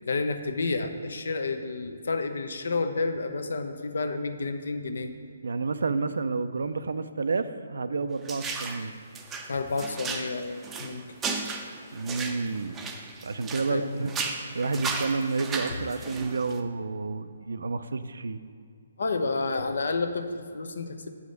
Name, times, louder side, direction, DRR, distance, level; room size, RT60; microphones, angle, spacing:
voice 1, 0.0-5.1 9.5-11.1 13.7-14.1 15.7-15.8 19.0-21.1, left 3 dB, 65° left, 7 dB, 0.6 m, -30 dB
voice 2, 5.4-8.9 11.9-12.8 13.2-18.4, right 4 dB, 70° right, 11 dB, 0.4 m, -30 dB
sound 1, 8.3-8.9 9.2-13.8 14.1-16.6, right 4 dB, 15° right, 0.5 m, -35 dB
8.1 x 4.9 x 5.2 m, 2.3 s
figure-of-eight pair, 140°, 0 cm